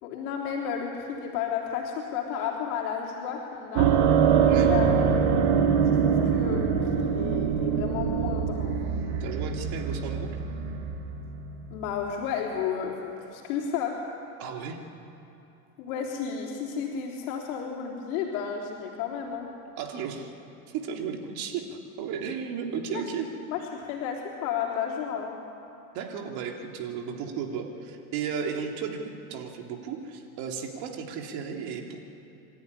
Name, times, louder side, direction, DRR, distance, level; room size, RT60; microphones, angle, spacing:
voice 1, 0.0-3.9 4.4-4.9 5.9-8.8 11.7-14.0 15.8-19.5 22.9-23.0 23.5-25.4, left 7 dB, 65° left, -2 dB, 3.6 m, -32 dB
sound 1, 3.8-12.1, right 7 dB, 75° right, 2.0 m, -24 dB
voice 2, 9.2-10.3 14.4-14.8 19.8-20.3 20.7-23.3 25.9-29.0 29.3-32.0, right 6 dB, 55° right, 2 dB, 3.2 m, -34 dB
26.5 x 13.5 x 9.9 m, 2.9 s
supercardioid pair, 115°, 45 cm